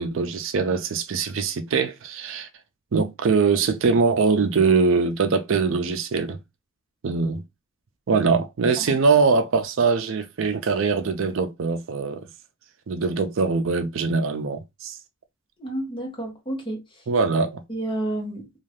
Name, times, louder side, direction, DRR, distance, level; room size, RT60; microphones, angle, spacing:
voice 1, 0.0-2.5 2.9-6.4 7.0-7.4 8.1-12.2 12.9-15.0 17.1-17.6, right 4 dB, 65° right, 0.4 m, -22 dB
voice 2, 15.6-16.8 17.7-18.5, right 1 dB, 25° left, 1.0 m, -30 dB
2.6 x 2.3 x 3.2 m
head